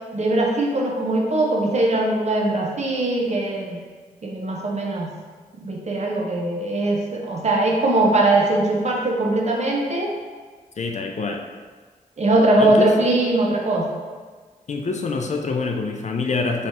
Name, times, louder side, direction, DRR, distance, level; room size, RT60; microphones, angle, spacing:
voice 1, 0.1-3.8 4.2-5.1 5.6-10.1 12.2-13.9, right 2 dB, 50° right, -2 dB, 0.9 m, -21 dB
voice 2, 10.8-11.4 12.6-13.1 14.7-16.7, left 4 dB, 50° left, 3 dB, 0.5 m, -26 dB
3.2 x 3.1 x 4.2 m, 1.5 s
cardioid pair, 55°, 15 cm